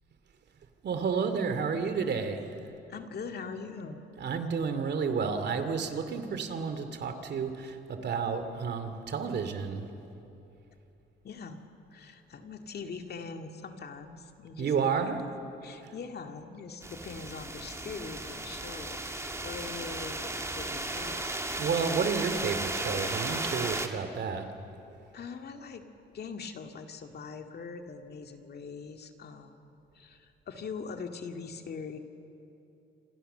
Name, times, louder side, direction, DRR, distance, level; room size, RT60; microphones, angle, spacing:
voice 1, 0.8-2.6 4.2-9.9 14.6-15.2 15.8-15.9 21.5-24.8, right 5 dB, 60° right, 8 dB, 2.6 m, -31 dB
voice 2, 2.9-4.0 11.2-11.6 11.9-14.7 15.6-21.4 25.1-25.8 26.1-32.0, left 5 dB, 55° left, 5 dB, 2.2 m, -42 dB
sound 1, 16.8-23.9, right 2 dB, 15° right, 2.1 m, -35 dB
27.5 x 26.5 x 6.9 m, 2.8 s
cardioid pair, 90°, 20 cm